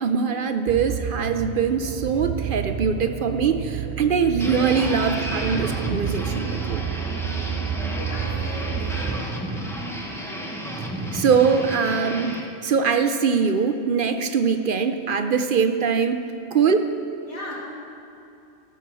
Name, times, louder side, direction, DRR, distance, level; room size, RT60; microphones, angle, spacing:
voice 1, 0.0-6.8 11.1-12.4 12.6-16.2 16.5-16.9, right 6 dB, 55° right, 8 dB, 0.7 m, -22 dB
sound 1, 0.7-9.2, right 9 dB, 85° right, 0.4 m, -30 dB
sound 2, 4.4-12.4, equal, ahead, 1.0 m, -32 dB
voice 2, 7.9-9.3 17.3-17.7, left 2 dB, 60° left, -5 dB, 2.9 m, -37 dB
15.0 x 7.9 x 6.2 m, 2.7 s
omnidirectional pair, 1.3 m